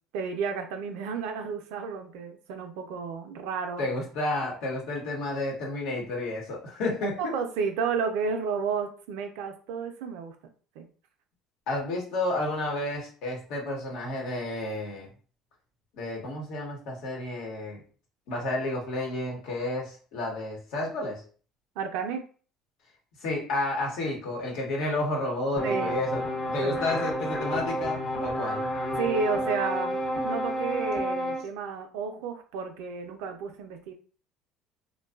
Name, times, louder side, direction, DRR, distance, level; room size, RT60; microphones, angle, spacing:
voice 1, 0.1-3.9 7.2-10.4 10.8-10.9 21.8-22.2 25.6-26.0 26.6-26.8 29.0-33.9, right 5 dB, 80° right, 6 dB, 0.4 m, -32 dB
voice 2, 3.8-7.4 11.7-15.1 15.9-17.8 18.3-21.2 23.2-26.2 26.5-28.6, left 2 dB, 75° left, -1 dB, 1.0 m, -31 dB
sound 1, 25.6-31.4, equal, 35° left, 0.7 m, -30 dB
2.5 x 2.2 x 2.3 m, 0.40 s
supercardioid pair, 90°, 0 cm